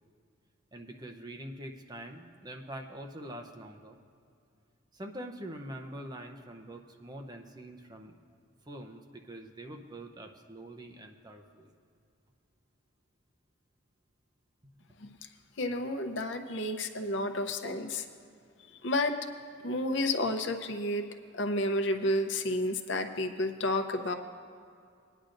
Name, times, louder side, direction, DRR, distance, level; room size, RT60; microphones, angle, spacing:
voice 1, 0.7-4.0 4.9-8.1 8.7-11.7 14.8-14.9, right 1 dB, 20° right, 4 dB, 0.7 m, -44 dB
voice 2, 15.6-18.1 18.8-19.2 19.6-21.0 21.3-24.1, left 1 dB, 70° left, 6 dB, 0.7 m, -31 dB
19.0 x 10.0 x 2.6 m, 2.3 s
head